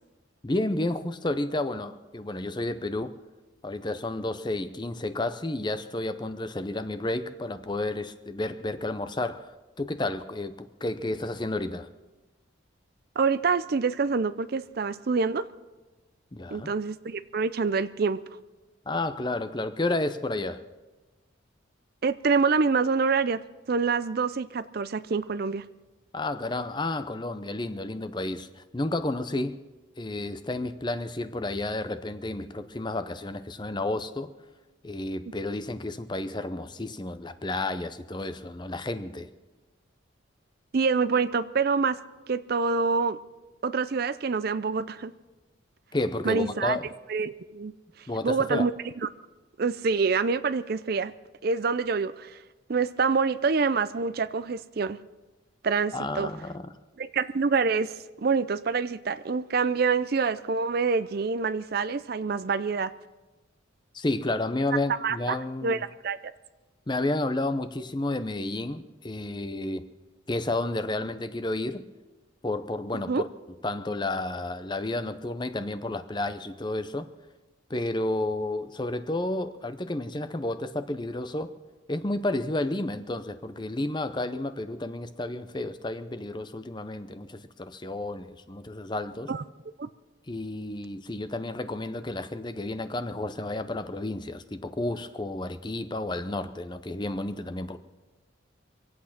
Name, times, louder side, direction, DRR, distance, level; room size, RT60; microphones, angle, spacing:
voice 1, 0.4-3.1 3.6-9.5 9.8-11.9 16.3-16.7 18.9-20.6 26.1-29.6 30.0-34.3 34.8-39.3 45.9-46.8 48.1-48.7 55.9-56.7 63.9-65.8 66.9-69.9 70.3-71.9 72.4-73.3 73.6-77.0 77.7-81.5 81.9-89.3 90.3-97.8, left 2 dB, 20° left, 11 dB, 0.6 m, -31 dB
voice 2, 13.2-15.4 16.5-18.2 22.0-23.4 23.7-25.6 40.7-42.0 42.3-43.2 43.6-45.1 46.2-46.8 47.1-47.7 48.2-48.7 49.0-49.1 49.6-51.1 51.4-52.4 52.7-55.0 55.6-56.3 57.0-62.9 65.0-65.4 65.6-66.2 73.1-73.2 89.3-89.4 89.8-89.9, right 5 dB, 50° right, 14 dB, 0.5 m, -26 dB
25.0 x 8.6 x 5.9 m, 1.1 s
head